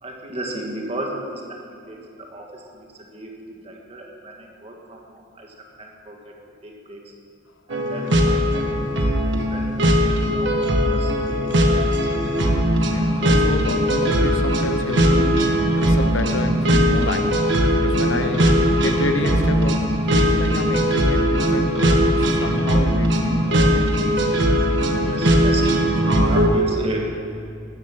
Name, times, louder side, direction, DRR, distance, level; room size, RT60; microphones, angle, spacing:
voice 1, 0.0-6.3 6.6-7.0 7.7-12.3 25.0-25.9 26.3-27.1, right 1 dB, 30° right, 0 dB, 1.9 m, -35 dB
sound 1, 7.7-26.5, equal, 65° right, 1.5 m, -19 dB
voice 2, 12.8-17.4 17.8-19.9 20.1-23.9, left 2 dB, 85° left, 7 dB, 1.1 m, -29 dB
13.5 x 11.5 x 6.0 m, 2.5 s
head